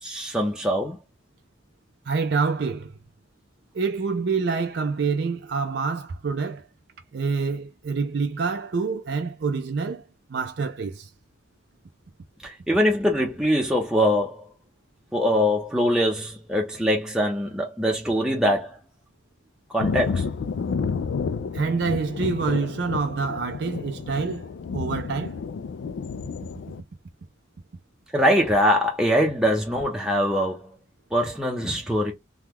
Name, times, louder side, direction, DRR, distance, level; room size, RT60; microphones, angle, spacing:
voice 1, 0.0-1.0 12.4-14.5 15.1-18.8 19.7-20.3 28.1-30.7 31.1-32.1, equal, 5° right, 0.6 m, -23 dB
voice 2, 2.1-3.0 3.7-6.6 7.1-10.0 10.3-11.1 21.5-24.5 24.7-25.4, right 4 dB, 65° right, 0.4 m, -26 dB
Thunder, 19.8-26.8, left 5 dB, 75° left, 0.3 m, -30 dB
3.5 x 2.3 x 2.9 m
head